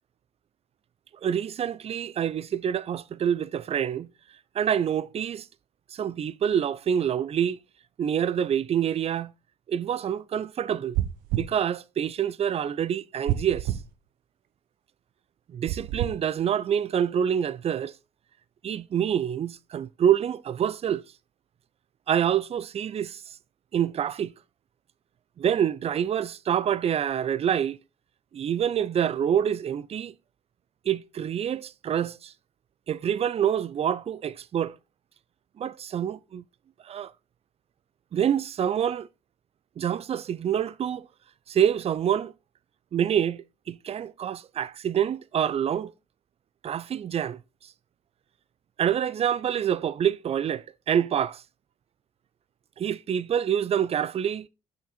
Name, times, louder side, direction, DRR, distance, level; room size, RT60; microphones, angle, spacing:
voice 1, 1.2-4.1 4.6-5.5 5.9-7.6 8.0-9.3 9.7-11.0 11.3-13.7 15.5-17.9 18.6-21.0 22.1-23.2 23.7-24.3 25.4-27.8 28.3-30.1 30.9-32.3 32.9-34.7 35.6-36.4 36.9-37.1 38.1-39.1 39.8-41.1 41.5-42.3 42.9-45.9 46.6-47.4 48.8-51.4 52.8-54.5, right 9 dB, 40° right, 0.5 m, -26 dB
sound 1, 10.9-11.5 13.3-13.9 15.7-16.2, right 13 dB, 70° right, 1.0 m, -28 dB
6.1 x 5.8 x 4.1 m
figure-of-eight pair, 45°, 16 cm